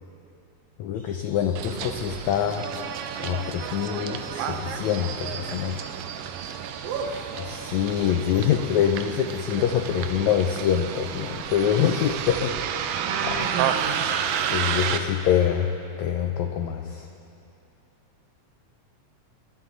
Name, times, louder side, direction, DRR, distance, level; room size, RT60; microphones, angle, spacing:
voice 1, 0.8-2.7 3.2-5.8 7.5-13.4 14.5-15.7 16.0-17.1, left 9 dB, 80° left, 5 dB, 1.6 m, -25 dB
sound 1, 0.9-8.6, right 2 dB, 5° left, 2.1 m, -50 dB
Bus, 1.6-15.0, right 8 dB, 85° right, 2.4 m, -31 dB
voice 2, 6.8-7.3 13.0-14.1, right 5 dB, 70° right, 0 dB, 2.3 m, -32 dB
29.5 x 11.5 x 4.0 m, 2.8 s
omnidirectional pair, 3.9 m